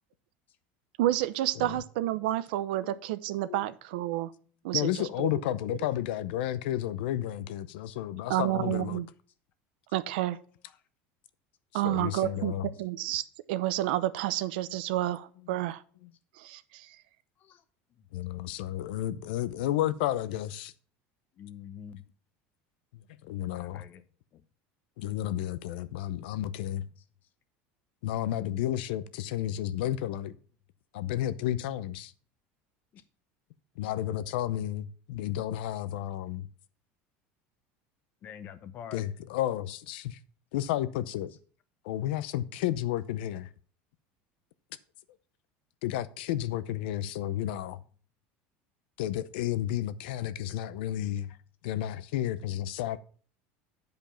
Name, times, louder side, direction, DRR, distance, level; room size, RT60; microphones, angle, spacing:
voice 1, 1.0-4.3 4.6-5.3 5.7-5.8 8.3-9.1 9.9-10.4 11.7-13.2 13.5-15.8 16.4-17.0, right 15 dB, 85° right, 0.7 m, -30 dB
voice 2, 4.7-9.0 11.8-12.7 18.1-20.7 22.9-23.9 25.0-26.9 28.0-30.3 30.9-32.1 33.8-36.5 38.9-40.2 40.5-41.3 41.8-43.5 45.8-47.8 49.0-51.4 51.6-53.0, left 12 dB, 85° left, 0.7 m, -32 dB
voice 3, 21.4-22.0 23.5-24.0 24.3-24.4 32.9-33.0 38.2-39.0, left 8 dB, 35° left, 0.9 m, -45 dB
9.1 x 5.2 x 5.7 m
cardioid pair, 160°, 5 cm